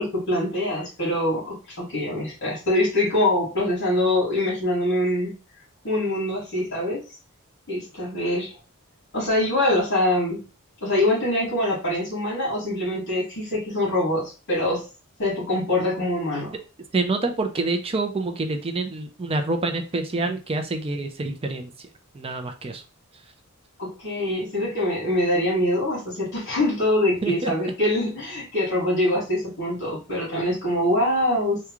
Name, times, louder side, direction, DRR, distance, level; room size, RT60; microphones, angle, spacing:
voice 1, 0.0-5.3 5.8-7.0 7.7-8.5 9.1-10.4 10.8-14.8 15.2-16.5 23.8-31.6, left 1 dB, 60° left, 1.9 m, -24 dB
voice 2, 16.9-21.7 22.1-22.8 27.2-27.5, right 3 dB, 25° right, 0.5 m, -27 dB
3.6 x 2.2 x 3.0 m
head